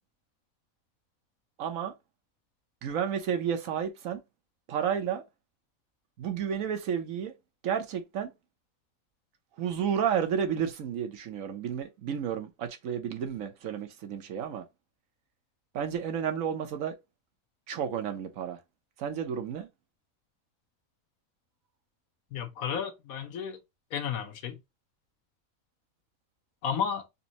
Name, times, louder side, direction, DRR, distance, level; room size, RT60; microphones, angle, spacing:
voice 1, 1.6-1.9 2.8-4.2 4.7-5.2 6.2-7.3 7.6-8.3 9.6-14.6 15.7-16.9 17.7-18.6 19.0-19.7, right 8 dB, 75° right, 1.2 m, -31 dB
voice 2, 22.3-23.6 23.9-24.6 26.6-27.1, left 7 dB, 85° left, 1.3 m, -32 dB
4.1 x 2.6 x 2.9 m
omnidirectional pair, 1.5 m